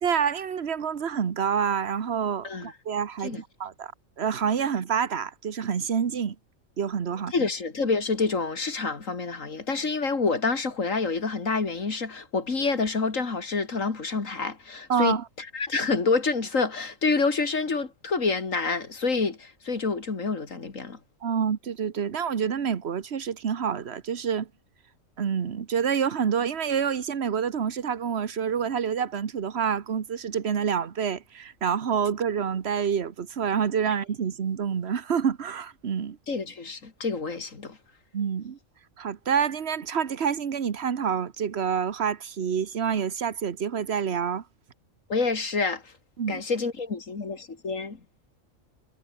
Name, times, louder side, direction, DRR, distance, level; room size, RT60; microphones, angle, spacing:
voice 1, 0.0-3.9 4.2-6.4 6.8-7.3 14.9-15.2 21.2-24.5 25.2-36.2 38.1-38.6 39.0-44.4 46.2-46.4, right 7 dB, 55° right, 1.4 m, -27 dB
voice 2, 7.3-21.0 36.3-37.8 45.1-45.9 46.3-48.0, left 4 dB, 70° left, 2.9 m, -28 dB
omnidirectional pair, 1.4 m